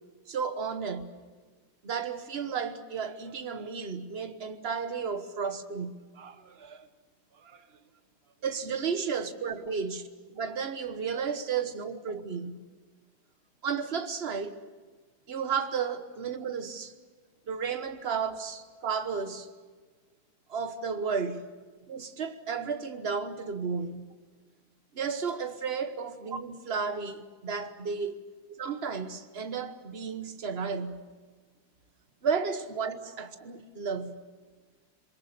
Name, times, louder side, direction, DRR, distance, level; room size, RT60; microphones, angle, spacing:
voice 1, 0.3-1.1 1.8-6.9 7.4-7.7 8.4-10.1 10.3-12.6 13.6-14.6 15.3-16.9 17.5-19.5 20.5-21.4 21.9-24.1 24.9-28.2 28.6-31.0 32.2-34.2, right 6 dB, 35° right, 1.3 m, -33 dB
27.5 x 22.5 x 6.9 m
omnidirectional pair, 2.1 m